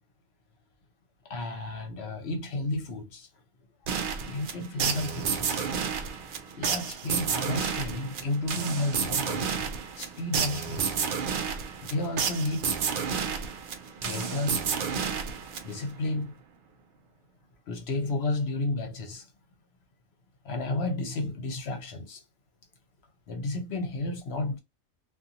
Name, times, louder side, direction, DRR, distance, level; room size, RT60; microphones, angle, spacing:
voice 1, 1.3-3.3 4.2-5.7 6.5-9.7 10.0-10.9 11.8-12.7 14.0-14.6 15.6-16.3 17.7-19.3 20.4-22.2 23.3-24.6, left 2 dB, 60° left, 0.9 m, -32 dB
sound 1, 3.9-16.0, right 6 dB, 60° right, 0.5 m, -31 dB
2.6 x 2.5 x 2.7 m
omnidirectional pair, 1.3 m